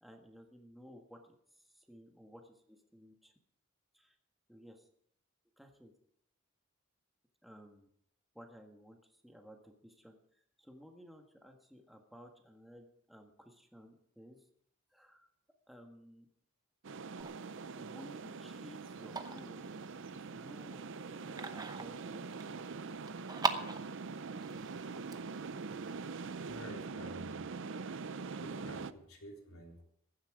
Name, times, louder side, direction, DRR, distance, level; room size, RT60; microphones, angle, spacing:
voice 1, 0.0-3.3 3.9-4.2 4.5-4.9 5.6-5.9 7.4-7.9 8.3-14.5 14.9-15.3 15.7-16.3 17.8-19.7 20.1-22.3 25.0-25.5, equal, ahead, 2 dB, 1.5 m, -56 dB
sound 1, 16.8-28.9, right 4 dB, 55° right, 0.6 m, -43 dB
sound 2, 17.2-26.6, right 4 dB, 20° right, 0.8 m, -43 dB
voice 2, 26.5-27.4 28.4-29.8, right 1 dB, 70° left, 1 dB, 3.7 m, -50 dB
15.5 x 11.5 x 4.9 m, 0.70 s
head